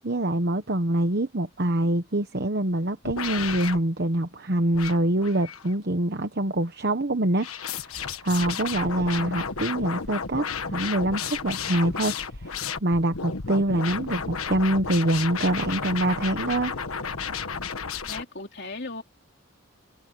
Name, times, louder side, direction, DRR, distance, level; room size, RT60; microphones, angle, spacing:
voice 1, 0.0-7.9 8.2-16.7, right 1 dB, 50° right, 1.1 m, -25 dB
sound 1, 3.0-3.8 4.7-5.7 7.4-18.2, left 6 dB, 90° left, 1.5 m, -32 dB
voice 2, 18.0-19.0, left 3 dB, 50° left, 3.7 m, -36 dB
head